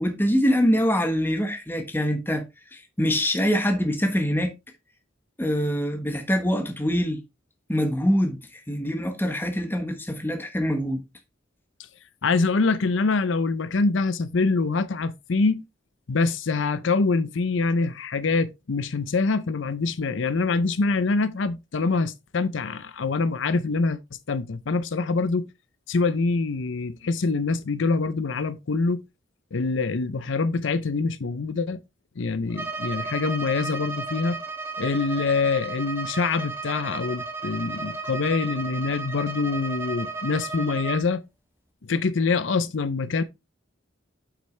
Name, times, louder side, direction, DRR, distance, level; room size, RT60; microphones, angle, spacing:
voice 1, 0.0-2.4 2.7-4.5 5.4-7.2 7.7-11.0, equal, 10° left, 1.1 m, -24 dB
voice 2, 12.2-15.6 16.1-24.0 24.3-25.5 25.9-29.0 29.5-31.8 32.2-34.4 34.8-41.2 41.8-43.2, left 4 dB, 75° left, 0.6 m, -25 dB
Bowed string instrument, 32.5-41.1, right 4 dB, 10° right, 0.9 m, -34 dB
7.8 x 5.9 x 3.2 m
head